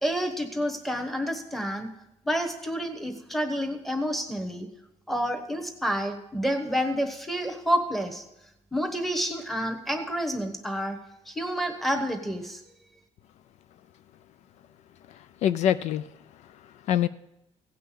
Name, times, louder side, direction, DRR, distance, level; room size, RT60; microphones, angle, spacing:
voice 1, 0.0-1.9 2.2-4.7 5.1-8.2 8.7-11.0 11.3-12.6, equal, ahead, 1.1 m, -29 dB
voice 2, 15.1-17.1, left 10 dB, 65° left, 0.4 m, -27 dB
16.5 x 5.6 x 8.4 m
cardioid pair, 175°, 12 cm